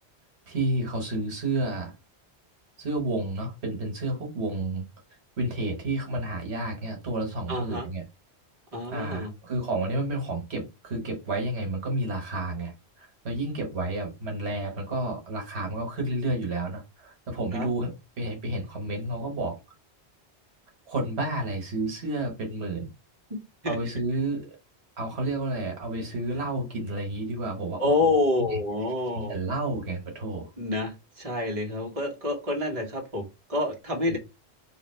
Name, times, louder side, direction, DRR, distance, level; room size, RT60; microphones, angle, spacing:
voice 1, 0.5-1.9 2.8-4.9 5.4-8.0 8.9-19.6 20.9-22.9 23.6-24.6 25.0-28.6 29.1-30.5 34.1-34.2, right 2 dB, 80° right, 2 dB, 1.5 m, -31 dB
voice 2, 7.5-7.8 8.7-9.3 17.5-17.7 23.6-23.8 27.8-29.4 30.6-34.2, left 2 dB, 35° right, 1 dB, 1.3 m, -27 dB
3.9 x 2.5 x 4.4 m, 0.25 s
omnidirectional pair, 1.1 m